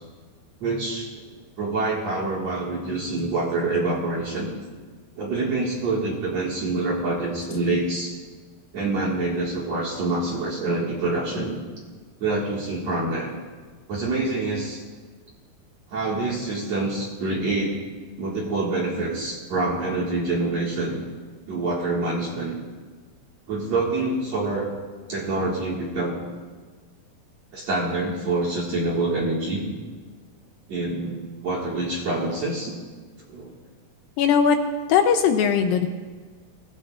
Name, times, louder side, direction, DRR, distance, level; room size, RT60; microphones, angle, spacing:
voice 1, 0.6-1.2 1.6-4.5 5.2-8.1 8.7-11.6 12.2-13.3 13.9-14.8 15.9-17.8 18.2-21.0 21.5-22.5 23.5-24.7 25.1-26.2 27.5-29.7 30.7-32.7 33.3-33.6, right 2 dB, 50° right, -4 dB, 2.7 m, -26 dB
voice 2, 34.2-34.6 34.9-35.9, left 7 dB, 75° left, 6 dB, 2.2 m, -19 dB
24.5 x 16.5 x 2.5 m, 1.5 s
omnidirectional pair, 4.5 m